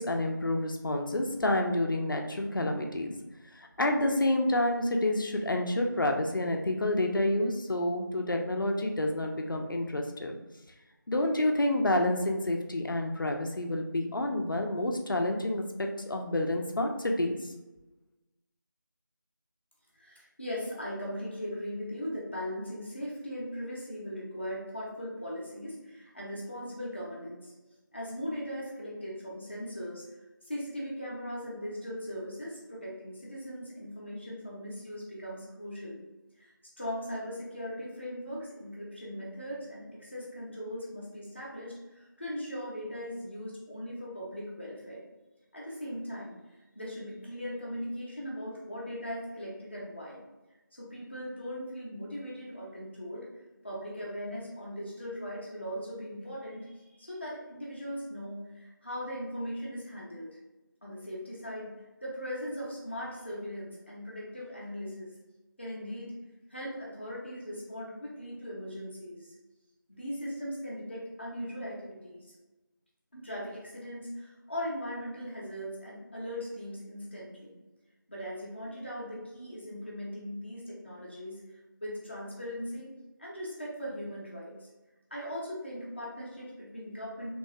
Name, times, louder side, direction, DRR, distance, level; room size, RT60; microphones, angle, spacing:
voice 1, 0.0-3.1 3.5-10.4 11.1-17.5, left 1 dB, 75° left, 3 dB, 0.5 m, -29 dB
voice 2, 20.0-27.5 27.9-30.1 30.5-36.0 36.4-45.0 45.5-46.4 46.7-50.2 50.7-53.3 53.6-60.3 60.8-61.7 62.0-65.1 65.6-66.2 66.5-69.3 70.0-72.4 73.1-77.5 78.1-82.9 83.2-84.7 85.1-87.3, equal, 30° left, -5 dB, 0.7 m, -39 dB
3.0 x 2.2 x 2.7 m, 1.1 s
figure-of-eight pair, 180°, 11 cm